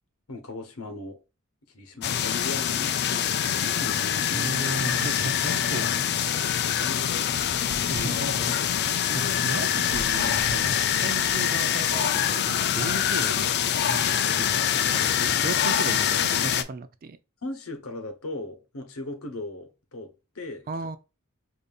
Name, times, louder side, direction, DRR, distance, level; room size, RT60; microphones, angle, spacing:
voice 1, 0.3-1.2 1.7-4.5 6.4-8.1 8.6-8.7 9.1-9.4 10.6-10.8 15.3-15.4 17.4-20.7, left 2 dB, 70° left, 0.9 m, -38 dB
sound 1, 2.0-16.6, left 9 dB, 50° left, 0.4 m, -25 dB
voice 2, 4.3-6.3 7.9-13.5 13.9-17.2 20.7-21.0, right 3 dB, 40° right, 0.4 m, -35 dB
5.2 x 2.6 x 2.3 m
head